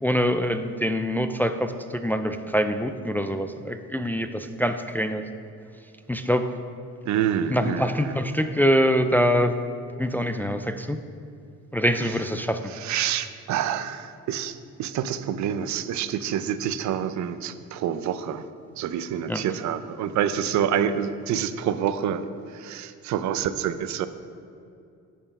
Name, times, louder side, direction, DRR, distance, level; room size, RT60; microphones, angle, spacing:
voice 1, 0.0-5.2 6.1-6.5 7.5-9.5 10.0-11.0 11.7-12.6 19.3-19.4, equal, 5° left, 8 dB, 0.3 m, -24 dB
voice 2, 7.1-8.1 12.7-18.4 18.8-22.2 22.5-24.1, right 9 dB, 70° right, 12 dB, 0.5 m, -27 dB
9.0 x 4.4 x 5.3 m, 2.5 s
cardioid pair, 90°, 30 cm